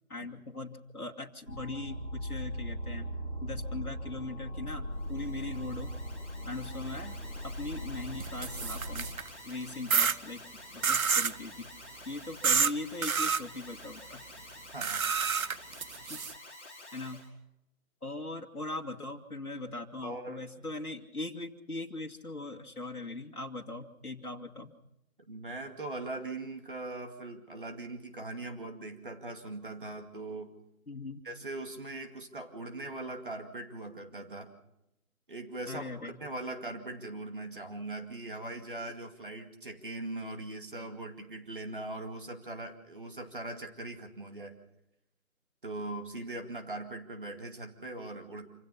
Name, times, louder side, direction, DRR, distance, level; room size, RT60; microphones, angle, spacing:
voice 1, 0.1-3.1 3.4-6.0 6.5-7.2 7.4-9.2 9.5-10.4 10.7-11.7 12.1-14.2 16.1-16.2 16.9-17.3 18.0-24.7 30.9-31.2 35.7-36.2, left 2 dB, 90° left, 1 dB, 2.3 m, -40 dB
sound 1, 1.5-9.1, equal, 90° right, 6.1 m, -39 dB
Alarm, 4.9-17.3, left 2 dB, 10° left, 1.5 m, -50 dB
sound 2, 8.2-9.3 9.9-10.2 10.8-11.4 12.4-12.7 13.0-13.4 14.8-16.3, right 6 dB, 70° right, 0.8 m, -28 dB
voice 2, 14.7-15.0 20.0-20.4 25.3-30.6 31.2-34.5 35.3-44.5 45.6-48.5, right 2 dB, 35° right, 5 dB, 2.3 m, -40 dB
27.0 x 17.0 x 5.7 m, 0.85 s
figure-of-eight pair, 175°, 43 cm